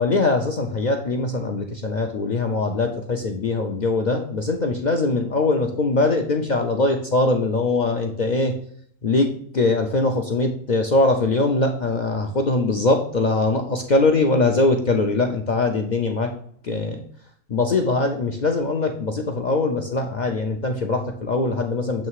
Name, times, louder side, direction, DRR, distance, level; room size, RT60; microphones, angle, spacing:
voice 1, 0.0-8.6 9.0-16.3 16.6-17.0 17.5-22.1, left 3 dB, 60° left, 3 dB, 0.4 m, -22 dB
7.5 x 3.2 x 4.6 m, 0.63 s
omnidirectional pair, 1.4 m